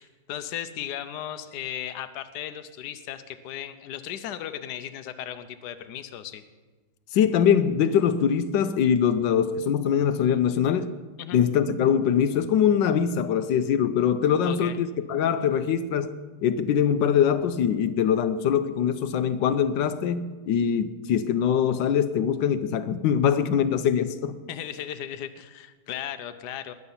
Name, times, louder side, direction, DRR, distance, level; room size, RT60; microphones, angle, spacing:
voice 1, 0.0-6.4 11.2-11.4 14.4-14.8 24.5-26.7, left 10 dB, 70° left, 10 dB, 1.3 m, -36 dB
voice 2, 7.1-10.9 11.3-16.1 16.4-24.4, left 8 dB, 90° left, 10 dB, 1.4 m, -23 dB
20.5 x 8.0 x 5.6 m, 1.3 s
omnidirectional pair, 1.9 m